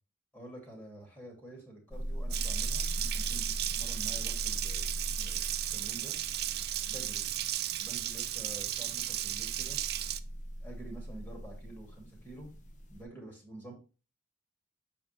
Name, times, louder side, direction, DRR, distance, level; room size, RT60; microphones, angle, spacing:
voice 1, 0.3-6.1 6.9-7.3 7.7-9.8 10.6-12.5 12.9-13.7, right 2 dB, 10° left, 0 dB, 2.5 m, -48 dB
sound 1, 1.9-13.0, equal, 40° left, 1.0 m, -40 dB
Water tap faucet, 2.3-10.2, right 13 dB, 55° right, 0.4 m, -35 dB
7.3 x 5.0 x 3.3 m, 0.33 s
head